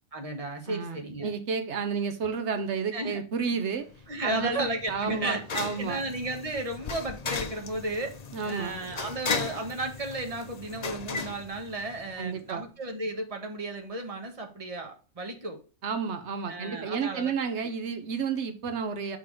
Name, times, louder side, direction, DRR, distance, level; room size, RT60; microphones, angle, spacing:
voice 1, 0.1-1.3 2.9-3.2 4.1-5.4 5.8-8.1 8.4-15.6 16.5-17.3, right 2 dB, 30° right, 4 dB, 1.3 m, -34 dB
voice 2, 0.7-3.9 4.2-6.0 8.3-8.7 12.2-12.6 15.8-19.2, right 5 dB, 85° right, 8 dB, 1.2 m, -31 dB
sound 1, 3.9-12.3, left 5 dB, 40° left, 0.7 m, -37 dB
5.9 x 3.9 x 4.8 m, 0.36 s
omnidirectional pair, 1.2 m